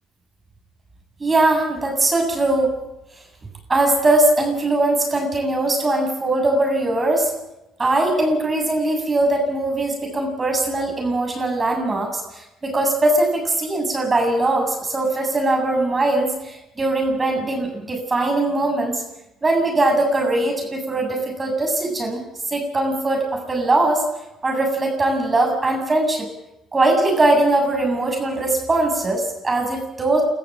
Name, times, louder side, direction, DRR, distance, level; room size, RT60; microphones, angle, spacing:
voice 1, 1.2-2.7 3.7-7.3 7.8-19.0 19.4-22.2 22.5-24.0 24.4-26.3 26.7-30.2, right 2 dB, 30° right, 2 dB, 8.0 m, -20 dB
23.5 x 14.0 x 9.0 m, 0.91 s
hypercardioid pair, 60°, 0 cm